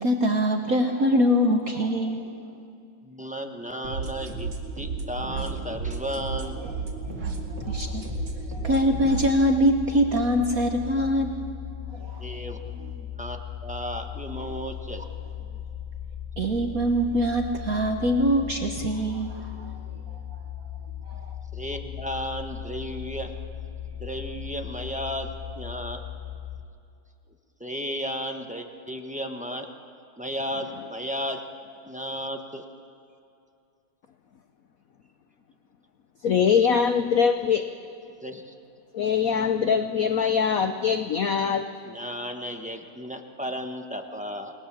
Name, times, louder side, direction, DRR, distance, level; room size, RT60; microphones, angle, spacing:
voice 1, 0.0-2.3 7.0-7.1 7.5-8.0 8.5-11.3 11.9-12.3 16.4-19.7 21.1-21.4, equal, 50° right, 4 dB, 1.4 m, -24 dB
voice 2, 3.0-4.5 4.8-6.6 12.2-15.0 15.4-15.6 21.5-23.3 24.0-26.0 27.6-29.7 30.2-31.5 31.9-32.6 36.5-36.7 38.2-38.5 41.8-44.5, equal, 5° right, 4 dB, 0.7 m, -34 dB
sound 1, 3.8-9.3, right 4 dB, 65° right, 3.0 m, -33 dB
sound 2, 7.5-26.6, left 9 dB, 35° left, 1.1 m, -37 dB
voice 3, 36.2-37.7 38.9-41.7, left 7 dB, 65° left, 8 dB, 0.8 m, -22 dB
29.5 x 19.5 x 7.4 m, 2.6 s
omnidirectional pair, 2.4 m